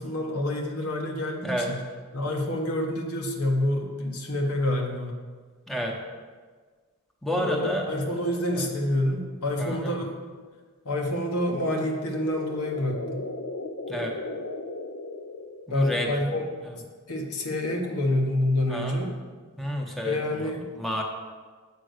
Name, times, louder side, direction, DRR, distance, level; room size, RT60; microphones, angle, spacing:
voice 1, 0.0-1.8 2.1-5.2 7.3-10.1 10.8-13.3 15.7-16.5 17.1-19.1 20.0-20.7, left 1 dB, 90° left, 1 dB, 1.4 m, -27 dB
voice 2, 7.2-7.9 8.5-8.7 9.6-10.0 13.9-14.1 15.7-16.7 18.7-19.1 19.6-21.0, equal, ahead, 0 dB, 0.9 m, -31 dB
sound 1, 11.7-16.0, left 2 dB, 55° left, 0.5 m, -37 dB
7.5 x 5.3 x 6.6 m, 1.5 s
head